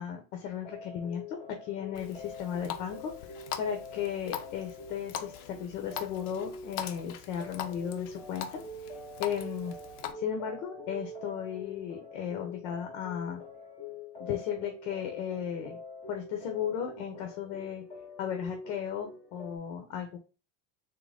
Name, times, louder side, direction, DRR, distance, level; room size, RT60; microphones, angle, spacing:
voice 1, 0.0-8.6 9.2-9.8 10.1-13.4 14.2-15.8 16.1-17.8 18.2-20.2, left 9 dB, 80° left, 4 dB, 1.0 m, -35 dB
sound 1, 0.6-19.6, left 2 dB, 15° left, 0.8 m, -45 dB
Water tap faucet, 1.9-10.1, left 9 dB, 60° left, 0.7 m, -42 dB
3.9 x 3.0 x 3.4 m, 0.32 s
cardioid pair, 165°, 39 cm